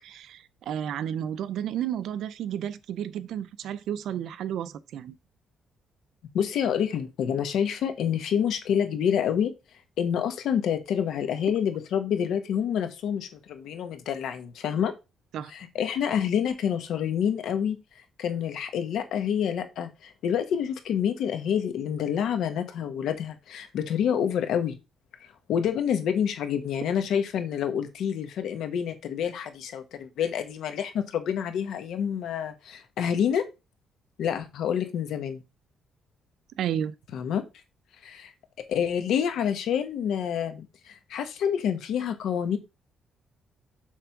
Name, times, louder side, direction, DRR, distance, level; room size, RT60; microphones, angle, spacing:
voice 1, 0.0-5.2 15.3-15.5 36.6-36.9, right 10 dB, 70° right, 0.5 m, -32 dB
voice 2, 6.3-9.5 10.0-14.9 15.5-17.8 18.2-24.8 25.5-33.5 34.2-35.4 37.1-37.4 38.0-38.3 38.7-42.6, left 8 dB, 70° left, 1.2 m, -28 dB
7.5 x 3.4 x 5.8 m
cardioid pair, 160°, 0 cm